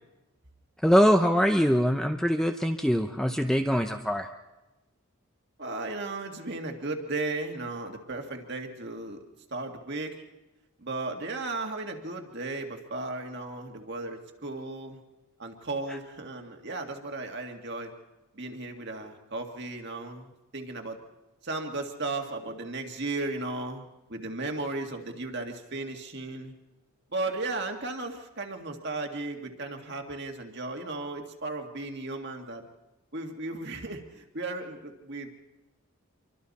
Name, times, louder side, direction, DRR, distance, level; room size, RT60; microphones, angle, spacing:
voice 1, 0.8-4.3, equal, ahead, 5 dB, 0.7 m, -23 dB
voice 2, 5.6-9.2 9.5-10.2 10.8-15.0 15.4-17.9 18.3-21.0 21.4-26.5 27.1-32.6 33.1-35.3, right 2 dB, 50° right, 3 dB, 2.0 m, -35 dB
27.0 x 24.0 x 4.2 m, 1.0 s
head